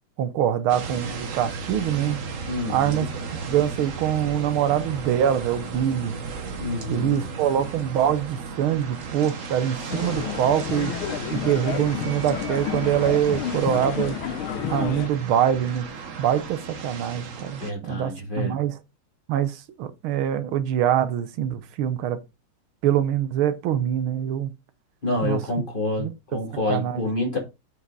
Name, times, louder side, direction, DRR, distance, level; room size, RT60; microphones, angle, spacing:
voice 1, 0.2-2.2 2.7-3.1 3.5-6.1 6.9-10.9 11.3-14.2 14.7-15.9 16.2-18.8 19.3-22.2 22.8-24.5 25.2-25.4 26.0-26.4 26.7-27.1, right 10 dB, 85° right, 1.7 m, -24 dB
sound 1, 0.7-17.7, right 5 dB, 45° right, 1.3 m, -35 dB
voice 2, 2.5-3.1 6.6-7.2 17.6-18.6 25.0-26.1 26.3-27.4, left 2 dB, 25° left, 2.7 m, -28 dB
sound 2, 9.9-15.1, left 10 dB, 85° left, 1.6 m, -30 dB
8.1 x 6.3 x 3.9 m
omnidirectional pair, 2.2 m